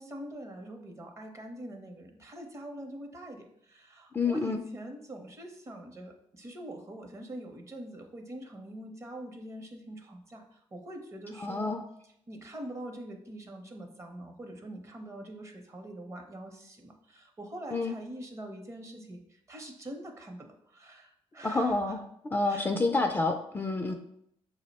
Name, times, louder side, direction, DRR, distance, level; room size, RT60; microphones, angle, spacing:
voice 1, 0.0-22.0 22.5-22.7 23.8-23.9, right 1 dB, 25° right, 4 dB, 0.7 m, -44 dB
voice 2, 4.1-4.6 11.4-11.8 17.7-17.9 21.4-22.0 22.3-23.9, left 3 dB, 20° left, 5 dB, 0.3 m, -28 dB
5.9 x 2.1 x 4.0 m, 0.73 s
cardioid pair, 110°, 10 cm